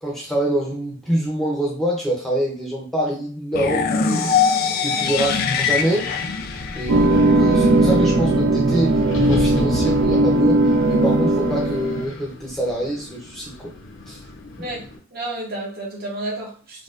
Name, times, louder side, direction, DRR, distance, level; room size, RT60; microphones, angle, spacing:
voice 1, 0.0-4.3 4.8-6.2 6.7-13.7 14.1-14.2, right 1 dB, ahead, 0.6 m, -25 dB
sound 1, 3.5-7.5, left 6 dB, 50° left, 0.3 m, -22 dB
Wind, 5.0-15.0, left 2 dB, 90° left, 0.6 m, -34 dB
sound 2, 6.9-12.1, right 2 dB, 90° right, 0.4 m, -18 dB
voice 2, 15.1-16.8, right 2 dB, 50° right, 1.1 m, -31 dB
4.1 x 2.2 x 2.5 m
head